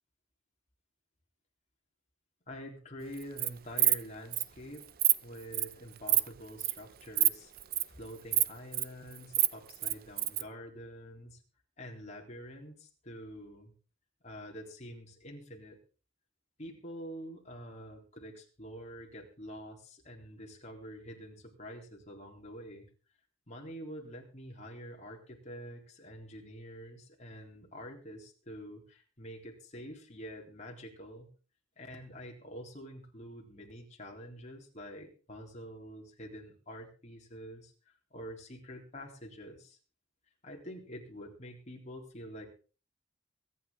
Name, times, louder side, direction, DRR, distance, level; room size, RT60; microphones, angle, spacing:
voice 1, 2.5-4.9 5.2-7.5 8.0-11.4 11.8-13.7 14.2-15.8 16.6-22.9 23.5-31.3 31.8-37.7 38.1-39.8 40.4-42.5, equal, 35° left, 0 dB, 3.8 m, -47 dB
Insect, 3.2-3.5 3.8-4.0 4.3-4.4 4.8-5.1 5.5-5.7 6.1-6.3 6.6-6.8 7.2-7.3 7.6-7.8 8.3-8.8 9.2-10.4, right 15 dB, 50° right, 0.6 m, -26 dB
23.5 x 9.8 x 3.9 m, 0.37 s
head